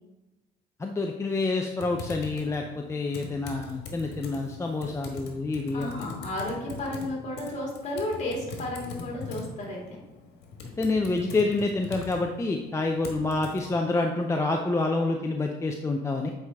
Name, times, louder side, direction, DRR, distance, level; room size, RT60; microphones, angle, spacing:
voice 1, 0.8-5.9 10.8-16.3, left 3 dB, 15° left, 2 dB, 0.5 m, -27 dB
Typing, 1.8-13.6, left 3 dB, 80° left, 1.4 m, -42 dB
voice 2, 5.7-9.8, left 1 dB, 45° left, -2 dB, 2.4 m, -33 dB
8.0 x 4.7 x 3.5 m, 1.0 s
cardioid pair, 110°, 17 cm